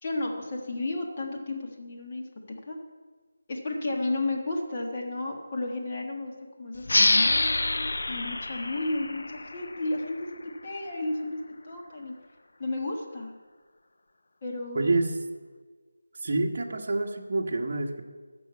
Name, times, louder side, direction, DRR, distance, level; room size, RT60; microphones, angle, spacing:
voice 1, 0.0-2.2 2.7-2.8 3.5-6.3 6.6-11.4 11.6-12.1 12.6-13.3 14.4-15.0, left 2 dB, 20° left, -1 dB, 1.4 m, -33 dB
sound 1, 6.9-10.1, left 2 dB, 60° left, 0.6 m, -26 dB
voice 2, 14.7-15.1 16.1-18.0, right 2 dB, 35° right, 2 dB, 1.4 m, -27 dB
14.0 x 6.1 x 8.2 m, 1.4 s
figure-of-eight pair, 175°, 0 cm